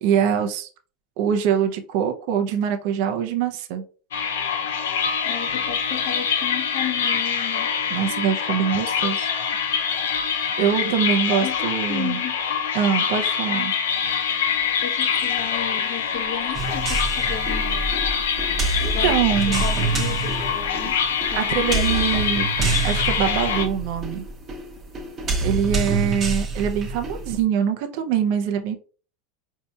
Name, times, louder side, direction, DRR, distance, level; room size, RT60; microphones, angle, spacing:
voice 1, 0.0-0.7 1.2-3.8 7.9-9.3 10.6-12.2 12.7-13.7 18.8-19.6 21.3-22.5 22.8-24.2 25.4-28.8, right 8 dB, 60° right, 0.5 m, -23 dB
sound 1, 4.1-23.7, left 7 dB, 90° left, 0.4 m, -25 dB
voice 2, 5.2-7.7 11.4-12.4 14.8-17.9 18.8-19.2 19.5-21.0 21.3-22.2, left 9 dB, 55° left, 0.8 m, -34 dB
sound 2, 14.5-25.9, left 1 dB, 15° left, 0.7 m, -39 dB
sound 3, 16.5-27.4, right 3 dB, 30° right, 0.8 m, -27 dB
4.2 x 2.7 x 2.3 m
supercardioid pair, 125°, 0 cm